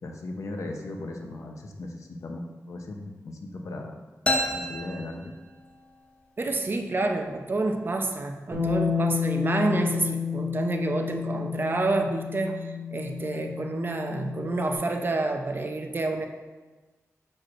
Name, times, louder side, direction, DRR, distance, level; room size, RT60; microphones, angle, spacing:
voice 1, 0.0-4.0 4.5-5.3, left 2 dB, 70° left, 2 dB, 0.8 m, -37 dB
sound 1, 4.3-6.0, left 1 dB, 20° left, 0.7 m, -30 dB
voice 2, 6.4-16.3, right 2 dB, 40° right, 4 dB, 0.6 m, -28 dB
Bass guitar, 8.5-14.8, left 6 dB, 60° right, 1.7 m, -30 dB
6.5 x 6.0 x 2.5 m, 1.3 s
wide cardioid pair, 100°, 6 cm